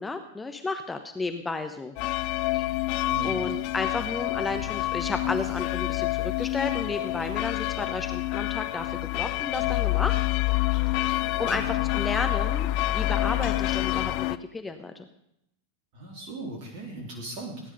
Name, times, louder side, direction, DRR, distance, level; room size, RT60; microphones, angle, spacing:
voice 1, 0.0-1.9 2.5-2.7 3.2-10.2 11.4-15.1, left 3 dB, 10° left, 7 dB, 1.1 m, -32 dB
sound 1, 2.0-14.4, left 17 dB, 45° left, 0.6 m, -27 dB
voice 2, 15.9-17.6, right 2 dB, 45° right, 0 dB, 3.5 m, -38 dB
18.0 x 10.0 x 5.4 m, 0.77 s
figure-of-eight pair, 90°, 0 cm